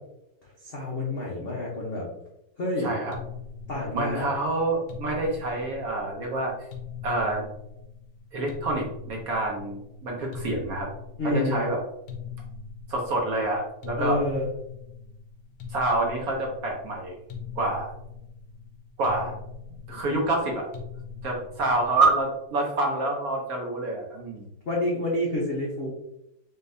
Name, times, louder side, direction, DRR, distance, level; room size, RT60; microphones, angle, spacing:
voice 1, 0.6-2.1 2.6-2.9 3.7-4.3 11.2-11.7 13.9-14.5 24.7-25.9, left 1 dB, 65° left, -5 dB, 0.5 m, -28 dB
voice 2, 2.8-3.2 3.9-6.5 7.0-7.4 8.3-10.9 11.2-11.8 12.9-14.2 15.7-17.2 17.6-17.9 19.0-19.3 19.9-20.7 21.2-24.5, right 2 dB, 65° right, 0 dB, 0.9 m, -27 dB
sound 1, 3.1-22.4, left 6 dB, 90° left, 1.6 m, -42 dB
4.3 x 3.7 x 2.6 m, 0.83 s
omnidirectional pair, 2.3 m